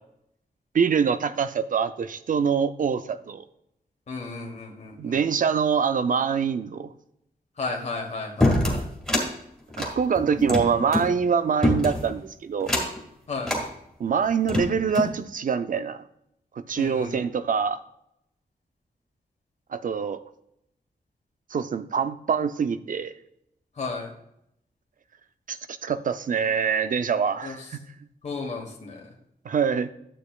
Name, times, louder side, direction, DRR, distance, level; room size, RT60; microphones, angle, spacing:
voice 1, 0.7-3.5 5.0-6.9 9.8-12.7 14.0-16.0 16.6-17.8 19.7-20.2 21.5-23.1 25.5-27.8 29.4-29.9, right 6 dB, 55° right, 11 dB, 0.5 m, -25 dB
voice 2, 4.1-5.2 7.6-8.8 13.3-13.6 16.8-17.1 23.8-24.1 27.4-27.5 28.2-29.0, left 3 dB, 45° left, -1 dB, 1.4 m, -33 dB
sound 1, 8.4-9.3 9.7-11.1 11.6-12.1 12.6-13.0 13.4-13.7 14.2-15.2, left 1 dB, ahead, 1.9 m, -24 dB
12.5 x 8.4 x 2.4 m, 0.78 s
wide cardioid pair, 180°, 17 cm